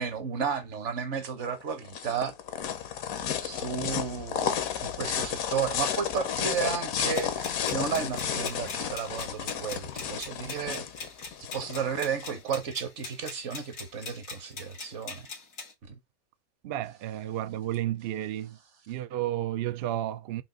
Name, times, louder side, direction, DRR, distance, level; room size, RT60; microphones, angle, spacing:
voice 1, 0.0-2.3 3.4-10.8 11.5-15.3 15.8-16.0, right 6 dB, 55° right, 1.2 m, -33 dB
sound 1, 1.4-12.3, left 8 dB, 70° left, 1.1 m, -32 dB
sound 2, 7.1-15.7, left 4 dB, 90° left, 2.3 m, -42 dB
voice 2, 16.6-18.6 18.9-20.4, right 13 dB, 75° right, 0.5 m, -32 dB
5.4 x 2.6 x 3.8 m
omnidirectional pair, 1.6 m